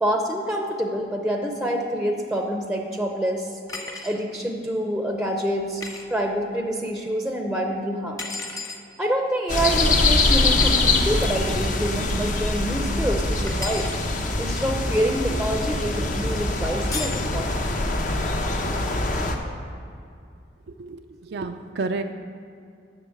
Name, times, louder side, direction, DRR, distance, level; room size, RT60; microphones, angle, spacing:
voice 1, 0.0-3.6 4.0-5.8 6.1-8.2 9.0-13.9 14.4-17.8, right 1 dB, 5° right, 3 dB, 0.6 m, -26 dB
sound 1, 3.7-4.2 5.8-6.0 8.2-8.8 10.6-10.8 13.5-14.0 16.9-17.3, left 3 dB, 20° left, 0.9 m, -33 dB
sound 2, 9.5-19.4, left 2 dB, 45° left, 0.8 m, -23 dB
voice 2, 20.8-22.0, right 3 dB, 65° right, 5 dB, 0.4 m, -30 dB
7.9 x 6.2 x 7.7 m, 2.4 s
head